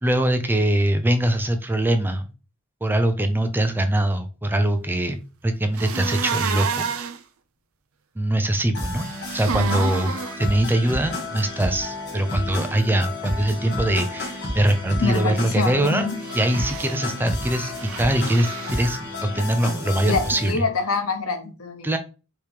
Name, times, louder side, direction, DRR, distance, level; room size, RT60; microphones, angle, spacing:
voice 1, 0.0-2.3 2.8-6.8 8.2-9.1 9.3-16.1 16.3-20.6 21.8-22.0, right 1 dB, 10° right, 7 dB, 0.4 m, -22 dB
sound 1, 5.8-7.2 9.0-10.4 16.2-17.0 17.8-18.8, right 6 dB, 70° right, 0.5 m, -29 dB
sound 2, 8.7-20.5, left 2 dB, 55° left, 1.6 m, -31 dB
voice 2, 15.0-16.2 17.5-17.7 20.1-21.9, left 4 dB, 85° left, 5 dB, 1.0 m, -26 dB
4.7 x 3.0 x 3.4 m, 0.33 s
head